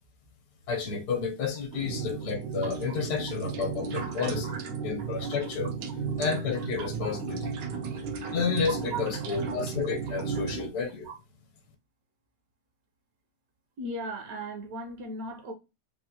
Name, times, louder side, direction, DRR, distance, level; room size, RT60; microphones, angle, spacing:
voice 1, 0.7-4.5 4.8-5.7 6.2-7.5 7.9-8.0 8.3-11.1, left 5 dB, 65° left, 1.4 m, -31 dB
sound 1, 1.7-10.7, right 5 dB, 85° right, 1.3 m, -34 dB
voice 2, 13.8-15.5, right 2 dB, 65° right, 1.0 m, -37 dB
3.7 x 2.5 x 2.8 m
omnidirectional pair, 1.8 m